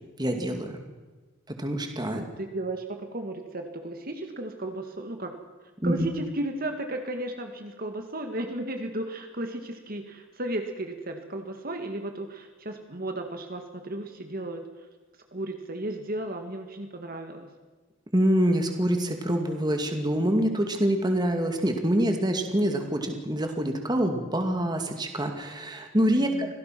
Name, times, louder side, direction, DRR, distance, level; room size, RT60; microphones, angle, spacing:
voice 1, 0.2-0.8 1.6-2.3 5.8-5.9 18.1-26.5, right 1 dB, 20° right, 4 dB, 2.3 m, -25 dB
voice 2, 2.1-5.3 5.8-14.6 15.3-17.5 26.1-26.5, right 1 dB, 45° right, 5 dB, 2.0 m, -34 dB
25.5 x 17.5 x 6.0 m, 1.3 s
head